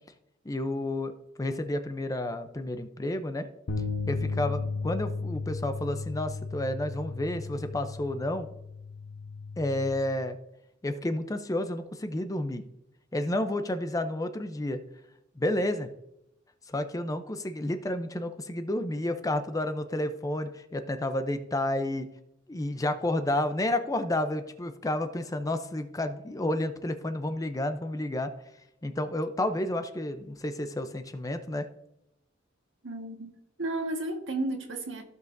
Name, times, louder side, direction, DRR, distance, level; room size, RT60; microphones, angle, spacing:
voice 1, 0.5-3.5 4.0-8.5 9.6-10.4 10.8-12.6 13.1-14.8 15.4-15.9 16.7-22.1 22.5-28.3 28.8-31.7, left 1 dB, 20° left, 0.5 m, -30 dB
sound 1, 3.7-9.9, left 4 dB, 80° left, 0.9 m, -35 dB
voice 2, 32.8-33.3 33.6-35.0, right 2 dB, 75° right, 1.4 m, -32 dB
15.0 x 5.4 x 2.6 m
head